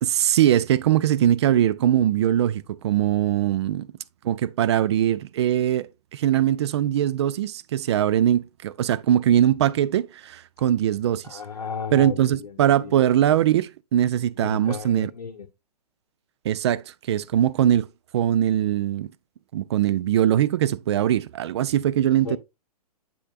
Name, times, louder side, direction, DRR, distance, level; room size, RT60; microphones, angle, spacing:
voice 1, 0.0-3.9 4.2-11.4 11.9-15.1 16.4-17.9 18.1-19.1 19.5-22.4, right 11 dB, 45° right, 0.4 m, -21 dB
voice 2, 11.2-12.9 14.4-15.5 22.2-22.4, left 6 dB, 65° left, 0.9 m, -34 dB
7.7 x 6.6 x 2.4 m
figure-of-eight pair, 120°, 20 cm